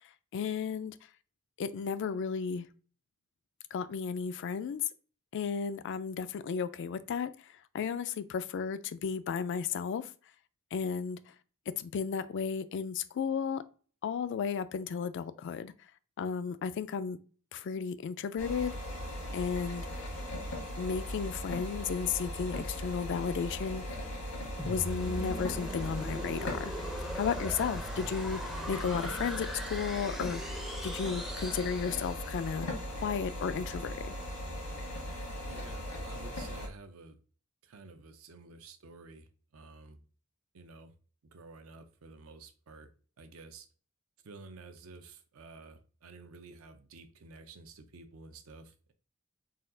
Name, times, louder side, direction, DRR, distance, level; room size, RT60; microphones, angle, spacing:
voice 1, 0.3-0.9 1.6-2.7 3.7-4.8 5.3-7.3 7.7-10.1 10.7-11.2 11.8-13.6 14.0-15.7 16.2-17.2 17.5-18.7 19.3-19.9 20.8-23.8 24.6-26.7 27.1-32.7 33.0-34.1, left 6 dB, 60° left, 0.3 m, -34 dB
sound 1, 18.4-36.7, left 1 dB, 90° left, 1.4 m, -39 dB
sound 2, 24.6-32.5, equal, ahead, 0.4 m, -41 dB
voice 2, 35.5-37.2 37.6-40.0 40.5-40.9 41.3-42.9 43.2-43.7 44.2-48.9, right 3 dB, 80° right, 0.6 m, -51 dB
4.1 x 2.3 x 3.8 m
head